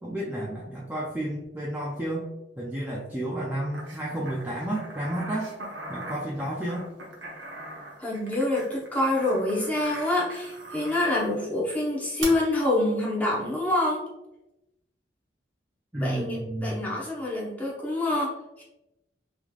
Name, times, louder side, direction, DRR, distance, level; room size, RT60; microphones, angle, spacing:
voice 1, 0.0-5.5 5.9-6.9 15.9-16.9, right 1 dB, 10° right, -4 dB, 0.4 m, -31 dB
sound 1, 3.7-11.4 12.2-12.3, right 2 dB, 85° right, 0.9 m, -41 dB
voice 2, 8.0-14.0 16.0-18.6, left 1 dB, 10° left, -5 dB, 0.9 m, -26 dB
3.7 x 3.1 x 2.3 m, 0.94 s
head